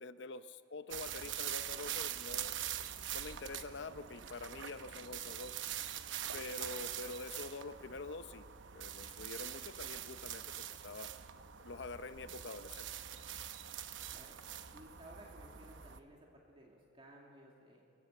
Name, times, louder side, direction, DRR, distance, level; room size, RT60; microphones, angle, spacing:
voice 1, 0.0-2.6 3.1-5.5 6.3-8.5 8.7-10.5 10.8-11.1 11.6-12.9, left 3 dB, 65° left, 12 dB, 0.7 m, -46 dB
sound 1, 0.9-16.0, right 10 dB, 75° right, 0.8 m, -44 dB
voice 2, 14.7-17.8, right 1 dB, 30° right, -2 dB, 2.3 m, -57 dB
24.0 x 15.5 x 7.9 m, 2.7 s
head